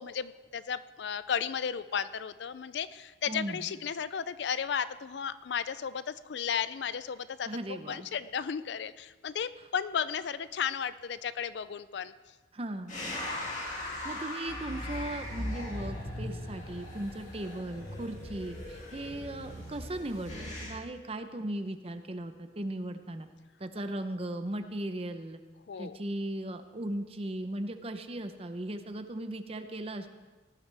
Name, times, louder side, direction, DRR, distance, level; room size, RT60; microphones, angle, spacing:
voice 1, 0.0-12.1 25.7-26.0, left 7 dB, 65° left, 15 dB, 0.4 m, -34 dB
voice 2, 3.3-3.7 7.5-8.1 12.5-13.0 14.0-23.3 23.6-25.4 25.8-30.1, right 1 dB, 30° right, 8 dB, 0.7 m, -37 dB
sound 1, 12.9-20.7, left 1 dB, 40° left, 2.7 m, -39 dB
18.0 x 11.0 x 3.4 m, 1.3 s
head